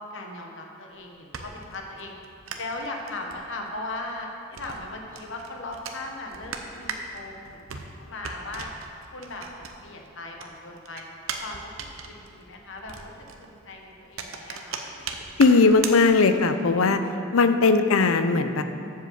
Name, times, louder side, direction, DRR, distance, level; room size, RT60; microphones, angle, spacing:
voice 1, 0.1-2.1 2.5-7.6 8.0-8.7 9.1-11.1 11.4-13.1 13.4-14.9, left 2 dB, 65° left, 2 dB, 1.2 m, -38 dB
sound 1, 0.9-10.1 10.4-16.6, right 5 dB, 85° right, 0.8 m, -39 dB
voice 2, 15.4-17.0 17.3-18.6, left 4 dB, 90° left, 9 dB, 0.6 m, -19 dB
7.5 x 7.4 x 7.0 m, 2.7 s
head